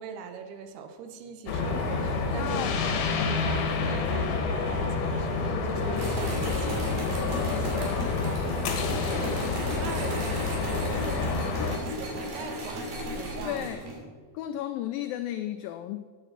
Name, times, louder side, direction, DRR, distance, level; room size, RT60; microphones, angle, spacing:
voice 1, 0.0-2.7 3.4-13.7, right 6 dB, 80° right, 8 dB, 2.9 m, -41 dB
sound 1, 1.5-11.8, left 4 dB, 70° left, 3.0 m, -28 dB
voice 2, 2.4-3.0 13.4-13.8 14.3-16.0, left 12 dB, 90° left, 8 dB, 2.0 m, -33 dB
sound 2, 4.3-10.3, left 1 dB, 25° left, 2.8 m, -41 dB
sound 3, 6.0-14.0, right 1 dB, 65° right, 4.2 m, -36 dB
9.2 x 8.4 x 7.2 m, 1.6 s
omnidirectional pair, 4.6 m